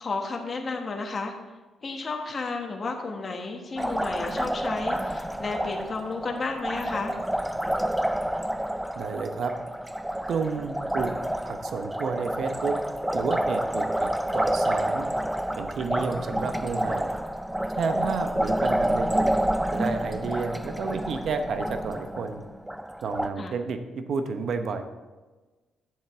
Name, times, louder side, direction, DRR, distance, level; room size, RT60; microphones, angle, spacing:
voice 1, 0.0-1.3 1.8-7.2 17.9-18.3 23.4-23.6, left 3 dB, 40° left, 2 dB, 1.3 m, -32 dB
Liquid, 3.8-23.3, right 1 dB, 5° right, 0.4 m, -29 dB
voice 2, 9.0-9.5 10.3-11.1 11.4-12.8 13.1-15.1 15.6-17.1 17.8-19.4 19.7-22.4 23.0-24.8, right 5 dB, 65° right, 8 dB, 0.9 m, -31 dB
9.7 x 7.2 x 3.6 m, 1.2 s
cardioid pair, 75°, 0 cm